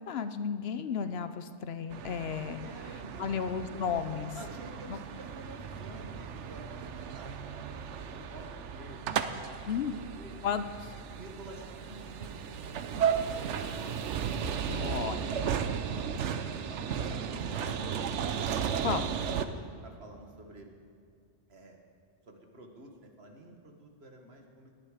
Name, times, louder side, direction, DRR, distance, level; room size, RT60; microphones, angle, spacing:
voice 1, 0.0-2.6 3.2-4.4 4.9-5.0 9.7-9.9 10.4-10.9 14.7-15.4 18.8-19.1, left 7 dB, 65° left, 11 dB, 0.9 m, -33 dB
sound 1, 1.9-19.4, right 7 dB, 80° right, 1.0 m, -35 dB
voice 2, 2.6-3.5 4.4-6.8 7.1-9.6 9.9-10.4 11.1-13.9 14.6-18.2 19.4-20.7 21.5-21.8 22.3-24.7, right 1 dB, 60° right, 3 dB, 1.8 m, -50 dB
Piano, 5.3-17.5, right 3 dB, 5° left, 2.4 m, -53 dB
18.5 x 10.5 x 5.0 m, 2.4 s
omnidirectional pair, 1.2 m